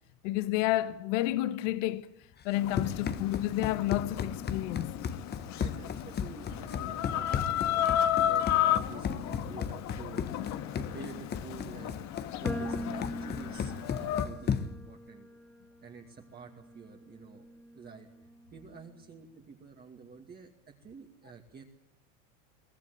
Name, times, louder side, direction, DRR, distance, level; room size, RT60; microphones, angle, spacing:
voice 1, 0.2-2.1 2.4-4.9, left 15 dB, 65° left, 1.4 m, -30 dB
Run, 2.4-14.9, left 7 dB, 25° left, 1.3 m, -35 dB
Chicken rooster, 2.5-14.3, left 11 dB, 45° left, 1.7 m, -33 dB
voice 2, 2.8-3.1 5.4-7.9 8.2-10.4 10.7-12.1 12.4-12.8 13.2-15.3 15.8-17.5 17.7-21.6, right 5 dB, 25° right, 2.4 m, -49 dB
sound 1, 12.4-18.8, right 1 dB, 5° left, 2.2 m, -44 dB
23.0 x 17.0 x 9.6 m
supercardioid pair, 120°, 40 cm